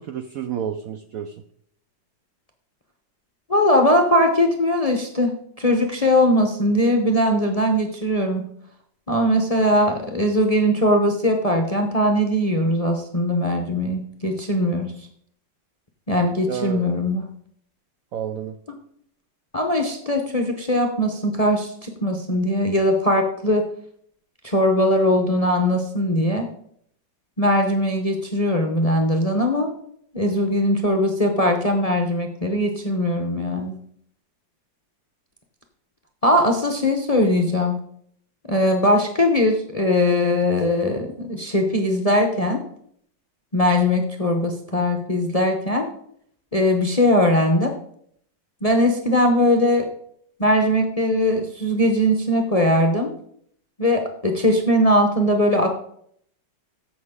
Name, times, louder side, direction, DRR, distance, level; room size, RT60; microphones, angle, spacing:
voice 1, 0.0-1.4 16.5-17.0 18.1-18.6, right 9 dB, 70° right, 9 dB, 0.8 m, -30 dB
voice 2, 3.5-8.4 9.1-14.9 16.1-17.3 19.5-23.6 24.4-26.5 27.4-29.7 30.1-33.8 36.2-37.8 38.5-42.6 43.5-45.9 46.5-47.7 48.6-49.9 50.4-53.1 53.8-55.7, left 1 dB, 30° left, 4 dB, 0.6 m, -20 dB
14.5 x 6.2 x 3.7 m, 0.67 s
omnidirectional pair, 2.0 m